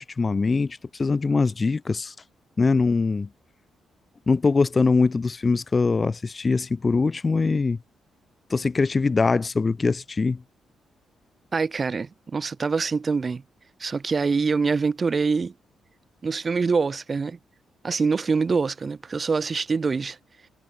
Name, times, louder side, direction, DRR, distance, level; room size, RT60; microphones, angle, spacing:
voice 1, 0.0-2.1 2.6-3.3 4.3-7.8 8.5-10.4, left 4 dB, 25° left, 0.4 m, -22 dB
voice 2, 11.5-13.4 13.8-15.5 16.2-17.4 17.8-20.2, right 4 dB, 30° right, 0.6 m, -24 dB
cardioid pair, 130°, 0 cm